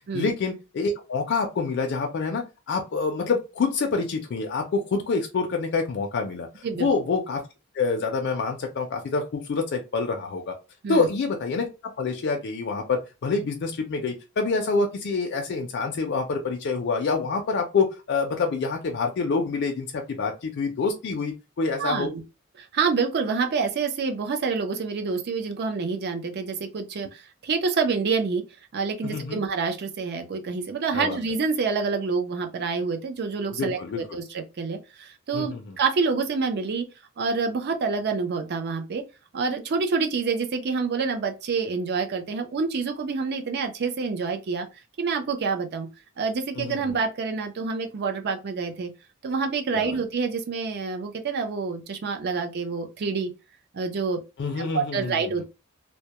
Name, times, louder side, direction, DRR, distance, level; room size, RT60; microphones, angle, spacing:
voice 1, 0.1-7.4 7.7-10.5 10.9-11.7 12.0-22.1 29.0-29.4 30.9-31.2 33.5-34.0 35.3-35.8 46.6-47.0 49.7-50.0 54.4-55.3, left 4 dB, 55° left, 0.4 m, -27 dB
voice 2, 21.8-22.2 22.6-28.4 28.7-36.9 37.2-39.0 39.3-44.7 45.0-45.9 46.2-48.9 49.2-53.3 53.7-54.2 54.6-55.4, right 5 dB, 50° right, 0.4 m, -27 dB
2.1 x 2.0 x 2.8 m
head